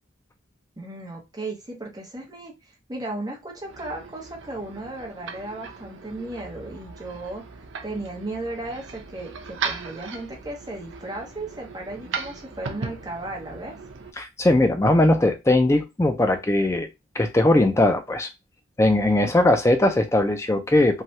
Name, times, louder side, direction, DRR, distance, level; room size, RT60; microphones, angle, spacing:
voice 1, 0.8-2.5 2.9-7.4 7.8-13.8, right 2 dB, 20° right, -1 dB, 0.8 m, -35 dB
sound 1, 3.5-14.1, right 5 dB, 75° right, 0.5 m, -37 dB
voice 2, 14.2-16.9 17.2-18.3 18.8-21.0, left 1 dB, 15° left, 6 dB, 0.4 m, -19 dB
3.2 x 2.2 x 2.7 m, 0.23 s
head